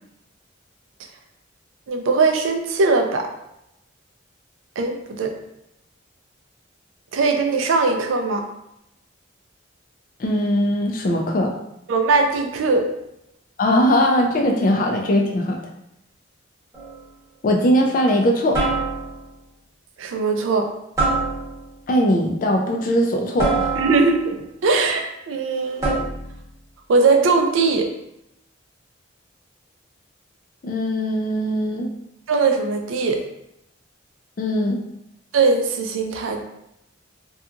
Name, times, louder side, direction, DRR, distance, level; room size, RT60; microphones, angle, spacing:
voice 1, 1.9-3.3 4.8-5.4 7.1-8.4 11.9-12.9 20.0-20.7 23.7-24.4 24.6-25.9 26.9-27.9 32.3-33.2 35.3-36.4, right 4 dB, 80° right, 5 dB, 0.4 m, -20 dB
voice 2, 10.2-11.5 13.6-15.6 17.4-18.6 21.9-23.7 30.6-31.9 34.4-34.8, equal, 40° left, 1 dB, 0.3 m, -20 dB
sound 1, 16.7-17.1 18.5-19.3 21.0-21.8 23.4-24.3 25.8-26.4, right 3 dB, 15° right, 0.8 m, -24 dB
2.8 x 2.3 x 2.4 m, 0.83 s
head